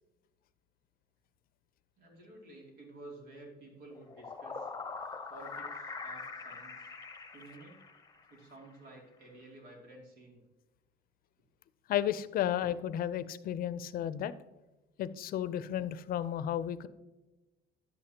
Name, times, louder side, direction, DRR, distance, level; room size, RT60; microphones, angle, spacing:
voice 1, 2.0-4.7 5.3-6.9 7.3-7.8 8.3-10.4, right 2 dB, 80° right, 0 dB, 2.7 m, -52 dB
sound 1, 3.9-8.4, left 4 dB, 20° left, 0.8 m, -43 dB
voice 2, 11.9-14.3 15.0-16.9, left 11 dB, 60° left, 15 dB, 0.5 m, -33 dB
10.5 x 8.5 x 2.9 m, 1.1 s
cardioid pair, 110°, 17 cm